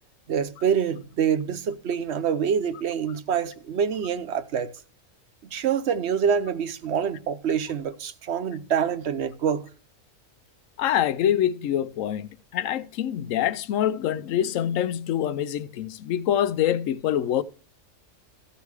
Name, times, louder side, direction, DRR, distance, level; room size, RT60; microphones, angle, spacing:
voice 1, 0.3-4.7 5.4-9.6, right 7 dB, 60° right, 0.9 m, -26 dB
voice 2, 10.8-17.4, left 10 dB, 80° left, 1.0 m, -25 dB
14.0 x 5.0 x 4.8 m
omnidirectional pair, 1.3 m